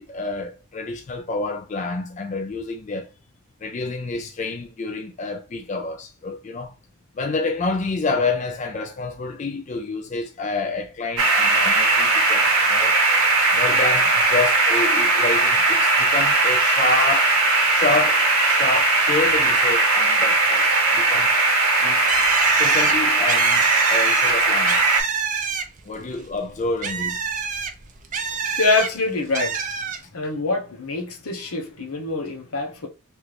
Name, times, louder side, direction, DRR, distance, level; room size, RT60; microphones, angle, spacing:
voice 1, 0.0-3.1 3.6-6.7 7.2-13.0 13.5-17.4 17.7-21.3 21.8-22.1 22.6-24.9 25.8-27.3, left 3 dB, 35° left, 0.3 m, -28 dB
sound 1, 11.2-25.0, right 3 dB, 80° right, 0.8 m, -19 dB
Bird, 22.1-25.9 26.3-28.9 29.3-30.0, right 6 dB, 35° right, 0.4 m, -26 dB
voice 2, 28.2-29.6 30.1-32.9, left 3 dB, 80° left, 0.9 m, -25 dB
3.1 x 2.5 x 3.2 m
head